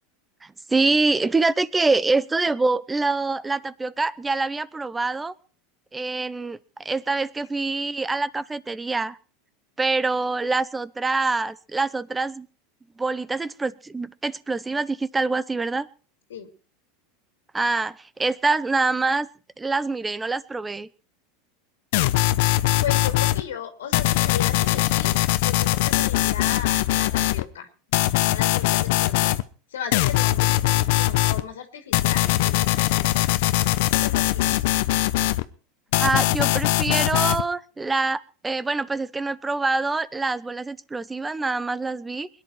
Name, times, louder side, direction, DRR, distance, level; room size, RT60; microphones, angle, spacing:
voice 1, 0.4-5.3 5.9-9.2 9.8-12.5 13.0-15.9 17.5-19.3 19.6-20.9 36.0-42.3, right 3 dB, 15° right, 19 dB, 0.9 m, -25 dB
sound 1, 21.9-23.4 23.9-27.4 27.9-29.4 29.9-31.4 31.9-35.4 35.9-37.4, left 17 dB, 70° left, 1.0 m, -21 dB
voice 2, 22.8-27.7 28.2-29.4 29.7-34.6, left 8 dB, 85° left, 7 dB, 2.6 m, -36 dB
21.5 x 11.0 x 4.7 m, 0.37 s
hypercardioid pair, 105°, 0 cm